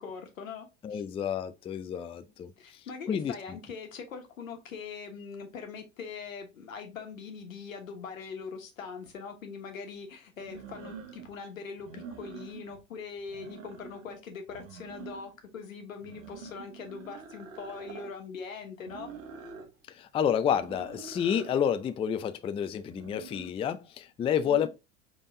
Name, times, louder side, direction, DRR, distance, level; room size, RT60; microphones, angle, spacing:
voice 1, 0.0-1.0 2.6-19.1 24.4-24.7, left 5 dB, 90° left, 1.3 m, -42 dB
voice 2, 0.8-2.5 3.1-3.6 19.9-24.7, left 8 dB, 15° left, 0.3 m, -29 dB
sound 1, 9.0-9.1 10.4-11.3 11.8-12.8 13.2-14.1 14.5-15.4 16.0-18.1 18.9-19.7 20.5-21.6 22.8-23.5, right 6 dB, 80° right, 1.2 m, -46 dB
5.1 x 3.7 x 2.6 m
hypercardioid pair, 85°, 39 cm